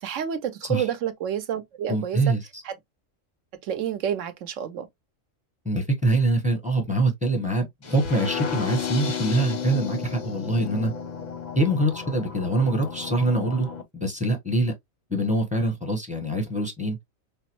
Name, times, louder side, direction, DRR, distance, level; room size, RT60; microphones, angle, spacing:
voice 1, 0.0-2.2 2.6-2.7 3.6-4.9, right 9 dB, 70° right, 1.0 m, -29 dB
voice 2, 1.9-2.6 5.6-10.9 11.6-13.7 13.9-14.7 15.1-17.0, right 2 dB, 5° right, 0.8 m, -24 dB
sound 1, 7.8-13.8, left 7 dB, 45° left, 0.6 m, -33 dB
5.2 x 2.0 x 2.9 m
omnidirectional pair, 1.4 m